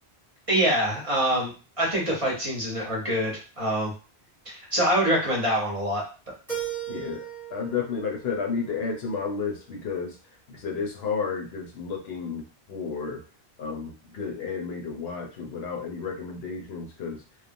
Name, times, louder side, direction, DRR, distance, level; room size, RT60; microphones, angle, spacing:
voice 1, 0.5-1.5 1.8-3.9 4.5-6.0, right 1 dB, 35° right, -2 dB, 0.8 m, -25 dB
Keyboard (musical), 6.5-9.4, right 9 dB, ahead, 0.9 m, -37 dB
voice 2, 6.9-7.2 7.5-10.2 10.5-13.2 13.6-17.2, left 5 dB, 70° left, 2 dB, 0.9 m, -32 dB
3.0 x 2.2 x 2.5 m, 0.34 s
omnidirectional pair, 1.1 m